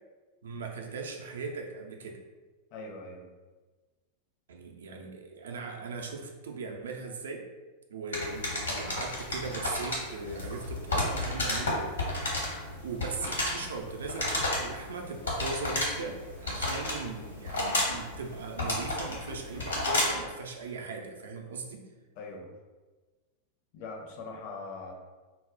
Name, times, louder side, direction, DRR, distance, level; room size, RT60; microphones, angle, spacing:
voice 1, 0.4-2.2 4.5-7.5 7.9-11.9 12.8-21.9, right 4 dB, 65° right, 2 dB, 0.4 m, -39 dB
voice 2, 2.7-3.3 22.2-22.5 23.7-24.9, left 3 dB, 45° left, 1 dB, 0.5 m, -41 dB
sound 1, 8.1-20.3, left 1 dB, 70° left, 0.8 m, -32 dB
2.1 x 2.0 x 3.6 m, 1.3 s
figure-of-eight pair, 90°, 0 cm